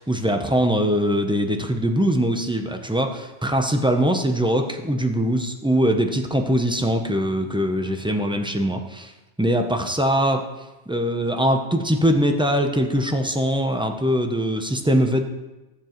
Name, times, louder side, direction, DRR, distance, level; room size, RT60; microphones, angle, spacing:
voice 1, 0.0-9.1 9.4-10.4 10.9-15.2, equal, 5° right, 4 dB, 0.4 m, -22 dB
14.5 x 7.0 x 3.0 m, 1.1 s
omnidirectional pair, 1.2 m